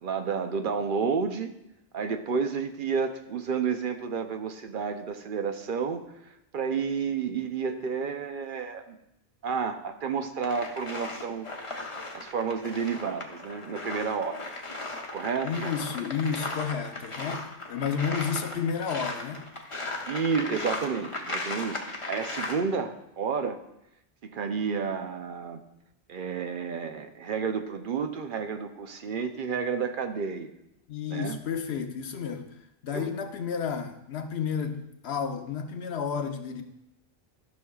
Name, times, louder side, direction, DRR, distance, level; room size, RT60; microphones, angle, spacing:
voice 1, 0.0-1.5 1.9-9.0 9.4-11.5 12.1-14.4 15.1-15.5 20.1-23.6 24.2-25.6 26.1-30.5 31.1-31.4 32.9-33.1, right 6 dB, 60° right, 7 dB, 0.7 m, -31 dB
sound 1, 10.4-22.6, left 2 dB, 35° left, 0.9 m, -37 dB
voice 2, 15.4-19.5 30.9-36.6, left 6 dB, 90° left, 6 dB, 1.0 m, -31 dB
12.5 x 6.2 x 2.3 m, 0.83 s
omnidirectional pair, 1.1 m